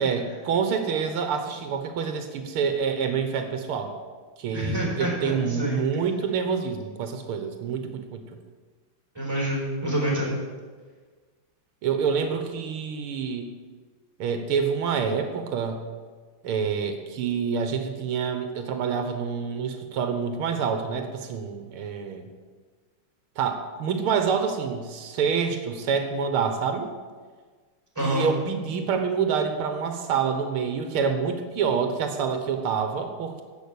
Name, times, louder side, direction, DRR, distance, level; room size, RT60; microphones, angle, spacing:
voice 1, 0.0-3.9 4.4-8.2 11.8-13.5 14.2-15.8 16.4-22.3 23.4-26.9 28.0-33.4, right 6 dB, 85° right, 7 dB, 2.0 m, -27 dB
voice 2, 4.5-5.8 9.1-10.3 27.9-28.3, right 1 dB, 10° right, -3 dB, 4.8 m, -27 dB
15.0 x 6.3 x 8.6 m, 1.5 s
omnidirectional pair, 2.3 m